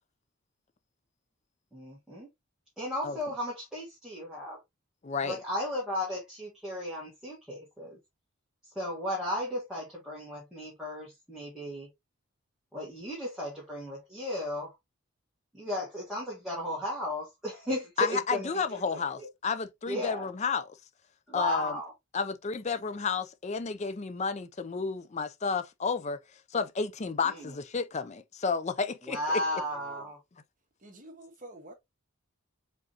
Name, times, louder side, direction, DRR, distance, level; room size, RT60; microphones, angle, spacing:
voice 1, 1.7-2.3 2.8-4.6 5.2-8.0 8.8-11.9 12.7-14.7 15.5-19.3 19.9-20.3 21.3-21.9 27.3-27.5 29.1-30.2, left 1 dB, 5° right, 1.9 m, -35 dB
voice 2, 5.0-5.4 18.0-20.7 21.3-21.8 22.1-26.2 26.5-29.2, left 5 dB, 30° left, 0.4 m, -31 dB
voice 3, 29.7-30.1 30.8-31.7, right 2 dB, 35° right, 1.3 m, -48 dB
4.9 x 3.6 x 2.8 m
head